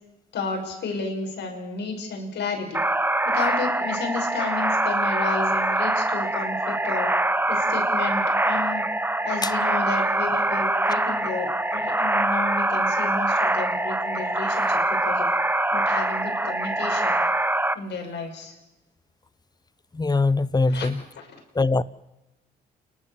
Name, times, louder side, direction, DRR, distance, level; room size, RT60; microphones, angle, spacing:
voice 1, 0.3-2.8 3.3-7.1 7.5-8.9 9.2-15.3 15.7-17.2 17.7-18.5 20.7-20.9, left 4 dB, 65° left, 6.1 m, -32 dB
sound 1, 2.7-17.8, right 1 dB, 10° right, 0.9 m, -24 dB
voice 2, 19.9-21.0 21.5-21.8, left 3 dB, 20° left, 0.9 m, -22 dB
29.0 x 12.0 x 7.4 m
supercardioid pair, 60°, 19 cm